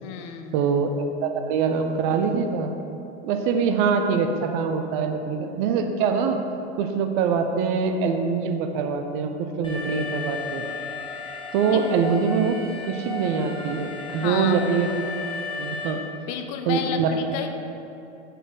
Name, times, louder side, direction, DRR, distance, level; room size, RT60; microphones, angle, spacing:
voice 1, 0.0-0.6 11.7-11.9 14.1-14.6 16.3-17.5, left 8 dB, 40° left, 6 dB, 0.6 m, -31 dB
voice 2, 0.5-2.7 3.2-6.4 6.8-10.7 11.5-12.6 12.8-14.9 15.6-16.0 16.7-17.1, right 5 dB, 45° right, 6 dB, 0.7 m, -24 dB
Alarm, 9.6-15.9, left 3 dB, 15° left, 1.3 m, -34 dB
6.4 x 5.4 x 3.7 m, 2.8 s
hypercardioid pair, 95°, 35 cm